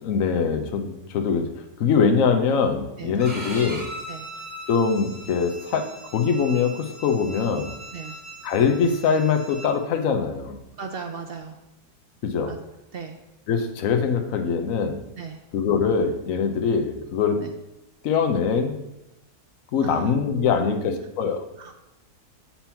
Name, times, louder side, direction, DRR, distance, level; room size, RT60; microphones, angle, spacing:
voice 1, 0.0-1.4 1.8-3.9 4.7-7.7 8.4-10.6 12.2-12.5 13.5-15.0 15.5-17.4 18.0-18.8 19.7-21.4, left 6 dB, 60° left, 5 dB, 1.1 m, -23 dB
voice 2, 3.0-3.3 4.1-4.3 7.9-8.2 10.8-11.6 12.5-12.6 12.9-13.2 15.2-15.4 17.4-17.5 19.8-21.1 21.6-21.7, right 5 dB, 70° right, 4 dB, 0.5 m, -36 dB
Bowed string instrument, 3.2-9.7, right 1 dB, 30° right, 2.1 m, -39 dB
7.3 x 4.3 x 5.7 m, 0.94 s
omnidirectional pair, 1.7 m